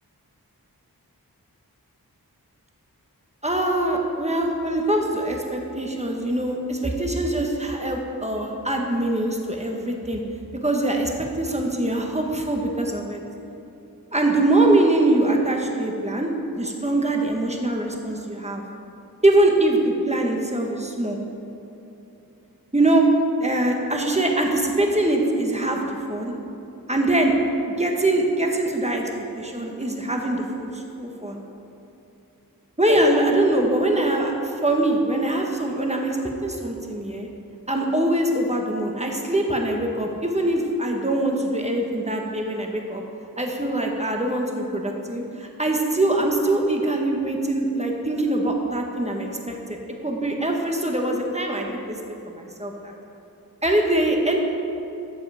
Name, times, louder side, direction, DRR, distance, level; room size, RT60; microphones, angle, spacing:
voice 1, 3.4-10.2 10.6-13.2 14.1-18.6 19.2-21.2 22.7-23.0 23.4-26.3 26.9-27.3 27.6-29.1 29.4-31.4 32.8-37.3 37.7-43.0 43.4-52.9 53.6-54.4, right 1 dB, 20° right, 1 dB, 1.5 m, -23 dB
13.0 x 7.7 x 5.1 m, 2.9 s
wide cardioid pair, 50°, 37 cm